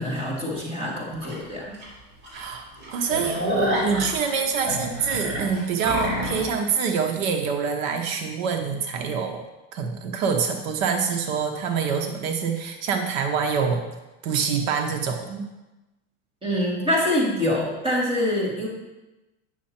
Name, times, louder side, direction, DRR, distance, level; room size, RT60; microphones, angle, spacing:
voice 1, 0.0-1.7 16.4-18.7, left 1 dB, 15° right, -5 dB, 2.4 m, -25 dB
sound 1, 1.2-1.3 1.8-1.9 2.2-2.4 2.7-6.5, equal, 45° right, 3.5 m, -27 dB
voice 2, 2.3-3.4 3.8-9.4 9.7-13.8 14.2-15.4, right 6 dB, 75° right, 4 dB, 1.1 m, -26 dB
9.1 x 6.6 x 4.4 m, 1.1 s
supercardioid pair, 155°, 40 cm